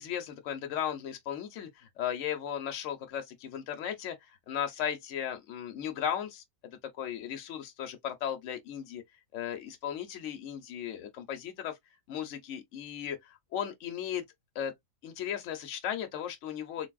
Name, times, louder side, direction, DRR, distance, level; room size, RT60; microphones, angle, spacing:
voice 1, 0.0-4.2 4.5-6.4 7.0-9.0 9.3-11.8 12.1-14.2 14.6-14.7 15.0-16.9, left 9 dB, 65° left, 1.0 m, -36 dB
3.3 x 2.5 x 2.3 m
omnidirectional pair, 1.5 m